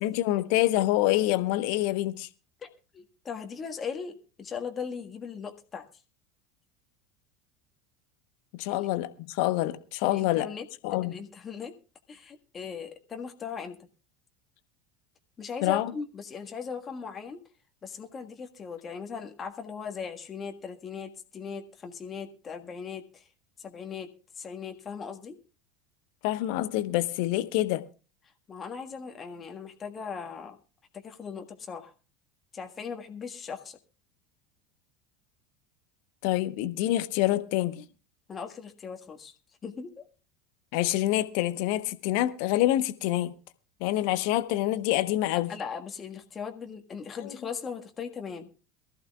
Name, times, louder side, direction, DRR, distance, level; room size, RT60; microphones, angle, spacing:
voice 1, 0.0-2.3 8.5-10.5 10.8-11.1 15.6-15.9 26.2-27.8 36.2-37.9 40.7-43.3 43.8-45.5 47.2-47.3, left 15 dB, 60° left, 1.0 m, -26 dB
voice 2, 2.6-5.8 8.7-8.9 10.0-10.6 11.0-11.7 12.1-13.9 15.4-17.4 17.8-23.3 23.6-25.4 28.5-30.6 30.9-31.9 32.5-33.8 38.3-39.3 39.6-40.1 45.3-48.5, left 6 dB, 30° left, 1.5 m, -39 dB
22.5 x 14.0 x 2.3 m
figure-of-eight pair, 75°, 0 cm